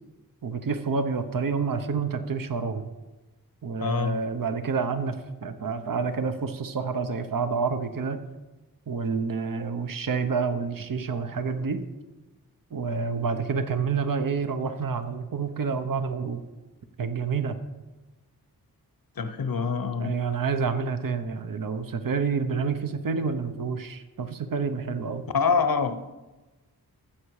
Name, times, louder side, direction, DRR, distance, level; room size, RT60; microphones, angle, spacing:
voice 1, 0.4-2.9 3.6-5.2 5.4-8.2 8.9-11.8 12.7-16.4 17.0-17.6 20.0-25.2, right 5 dB, 60° right, 9 dB, 1.0 m, -28 dB
voice 2, 3.8-4.2 19.2-20.2 25.3-26.1, left 5 dB, 65° left, 9 dB, 1.0 m, -25 dB
14.5 x 7.0 x 4.9 m, 1.1 s
wide cardioid pair, 70°, 38 cm